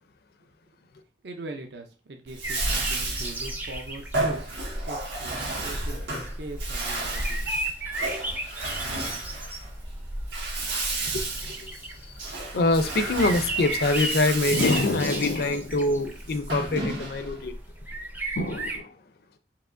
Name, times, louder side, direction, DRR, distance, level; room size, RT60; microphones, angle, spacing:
voice 1, 1.2-4.4 4.9-7.4, right 2 dB, 65° right, 0.5 m, -41 dB
Bathtub (filling or washing), 2.3-17.4, right 2 dB, 85° right, 1.6 m, -33 dB
sound 1, 2.4-18.8, right 1 dB, 10° right, 0.4 m, -34 dB
voice 2, 11.1-11.7 12.5-17.6 18.4-18.9, left 2 dB, 55° left, 0.4 m, -25 dB
4.7 x 3.0 x 2.5 m
head